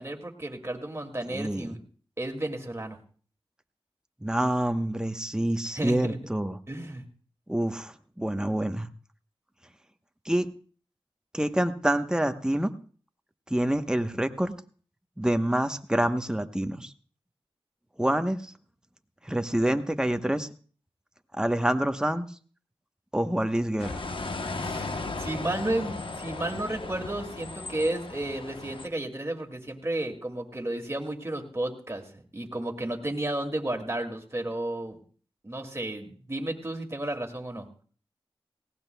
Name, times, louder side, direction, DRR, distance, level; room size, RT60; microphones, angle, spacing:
voice 1, 0.0-1.8 2.2-3.0 5.7-6.2 6.7-7.0 24.6-24.9 25.2-35.0 35.4-37.7, right 1 dB, 25° right, 3 dB, 2.3 m, -32 dB
voice 2, 1.3-1.7 4.2-6.6 7.5-8.9 10.2-10.5 11.3-12.7 13.5-14.5 15.2-16.9 18.0-18.5 19.2-20.5 21.3-22.3 23.1-24.0, right 1 dB, 10° right, 7 dB, 1.0 m, -27 dB
sound 1, 23.8-28.9, left 3 dB, 60° left, 1.0 m, -36 dB
18.5 x 17.0 x 2.3 m, 0.42 s
cardioid pair, 50°, 10 cm